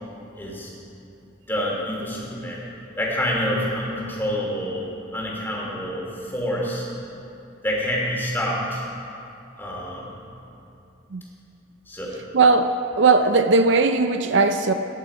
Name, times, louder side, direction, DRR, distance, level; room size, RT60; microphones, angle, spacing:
voice 1, 0.4-0.7 1.5-2.6 3.0-6.9 7.6-8.8 9.6-10.2 11.9-12.1, equal, 10° left, -4 dB, 2.9 m, -27 dB
voice 2, 12.3-14.7, right 3 dB, 60° right, 8 dB, 0.5 m, -18 dB
18.5 x 10.5 x 5.0 m, 2.8 s
head